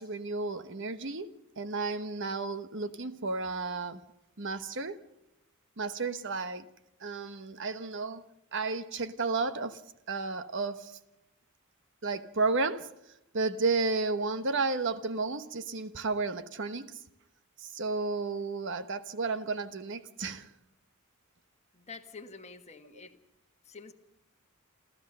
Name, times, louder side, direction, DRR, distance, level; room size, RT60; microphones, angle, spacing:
voice 1, 0.0-4.0 4.4-5.0 5.8-6.7 7.0-8.2 8.5-9.8 10.1-11.0 12.0-12.9 13.3-17.0 17.6-20.5, right 3 dB, 55° right, 1.1 m, -32 dB
voice 2, 21.7-23.2 23.6-23.9, left 4 dB, 30° left, 1.4 m, -47 dB
29.0 x 13.5 x 6.7 m
head